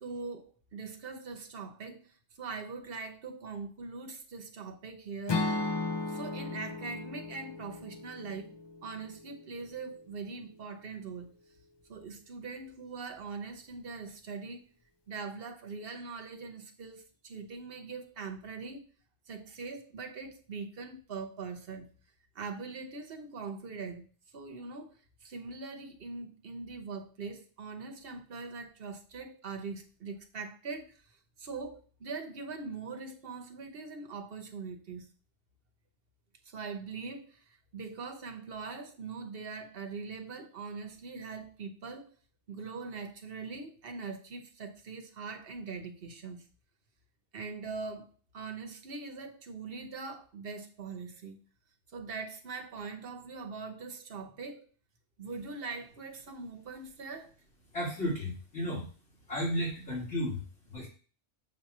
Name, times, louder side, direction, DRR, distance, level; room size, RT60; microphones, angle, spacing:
voice 1, 0.0-5.5 6.1-8.5 8.8-11.3 11.9-14.6 15.1-18.8 19.3-21.9 22.3-24.0 24.3-24.9 25.2-35.1 36.4-42.1 42.5-46.5 47.3-48.1 48.3-51.4 51.9-54.6 55.2-57.3, right 4 dB, 60° right, 1.1 m, -42 dB
Acoustic guitar / Strum, 5.3-9.4, left 3 dB, 35° left, 0.4 m, -35 dB
voice 2, 57.7-58.9 59.3-60.9, equal, 75° left, 2.0 m, -33 dB
7.2 x 2.8 x 5.9 m
omnidirectional pair, 1.1 m